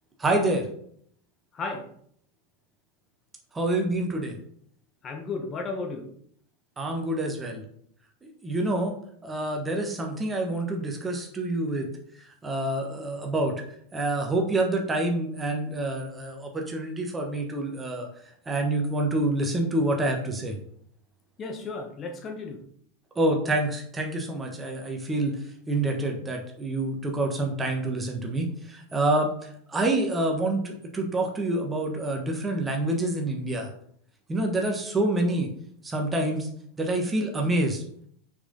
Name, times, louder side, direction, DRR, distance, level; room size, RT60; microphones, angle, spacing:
voice 1, 0.2-0.7 3.5-4.4 6.8-7.6 8.2-8.9 9.2-11.9 12.2-13.5 13.9-18.1 18.4-20.6 23.1-25.3 25.7-33.7 34.3-35.5 35.8-36.5 36.8-37.8, right 2 dB, 15° right, 2 dB, 1.5 m, -27 dB
voice 2, 5.0-6.0 21.4-22.6, left 3 dB, 25° left, 3 dB, 1.4 m, -34 dB
6.7 x 5.8 x 4.0 m, 0.65 s
figure-of-eight pair, 85°, 0 cm